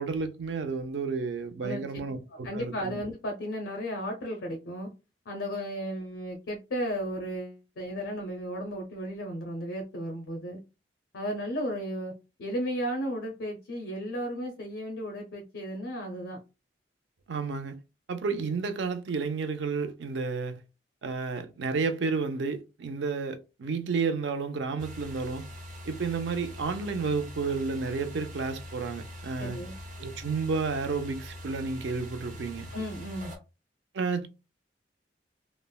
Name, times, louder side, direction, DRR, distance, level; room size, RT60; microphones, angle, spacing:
voice 1, 0.0-3.0 17.3-17.8 18.1-20.6 21.0-25.4 25.9-29.6 30.0-32.7 33.9-34.3, right 4 dB, 80° right, 0.5 m, -31 dB
voice 2, 2.4-4.9 5.3-10.6 11.1-12.1 12.4-16.4 29.4-29.7 32.7-33.3, equal, 85° left, 0.6 m, -34 dB
sound 1, 24.8-33.4, left 1 dB, 45° right, 0.7 m, -43 dB
3.3 x 2.0 x 2.2 m
head